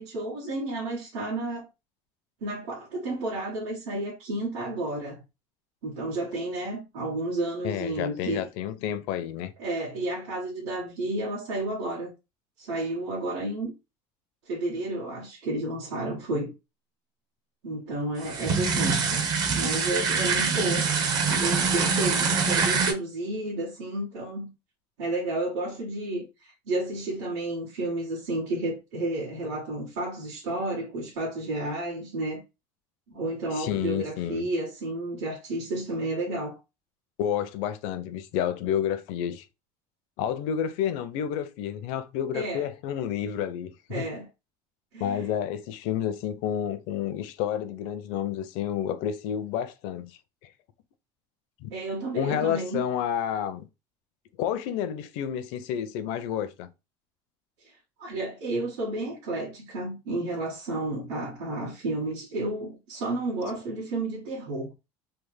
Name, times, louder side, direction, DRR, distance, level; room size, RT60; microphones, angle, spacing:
voice 1, 0.0-1.7 2.4-5.2 5.8-8.4 9.6-12.1 12.6-13.7 14.4-16.5 17.6-19.3 19.5-20.8 21.3-24.5 25.0-32.4 33.1-36.6 42.3-42.7 43.9-44.3 44.9-45.3 51.7-52.8 57.6-64.7, right 2 dB, 85° right, 1.5 m, -31 dB
voice 2, 7.6-9.5 33.5-34.5 37.2-39.5 40.2-44.0 45.0-50.1 51.6-51.7 52.2-53.7 54.4-56.7, left 9 dB, 65° left, 0.5 m, -30 dB
sound 1, 18.2-22.9, right 5 dB, 35° right, 0.6 m, -25 dB
3.2 x 2.1 x 3.2 m
cardioid pair, 160°, 12 cm